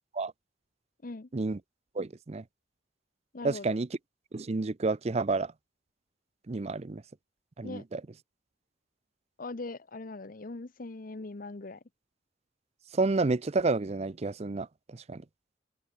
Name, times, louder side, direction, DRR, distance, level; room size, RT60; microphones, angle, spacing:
voice 1, 2.0-2.4 3.4-3.9 4.3-5.5 6.5-7.0 7.6-8.0 12.9-14.7 14.9-15.2, right 3 dB, 35° right, 0.5 m, -30 dB
voice 2, 3.3-3.8 7.6-7.8 9.4-11.8, left 3 dB, 45° left, 0.8 m, -41 dB
open air
head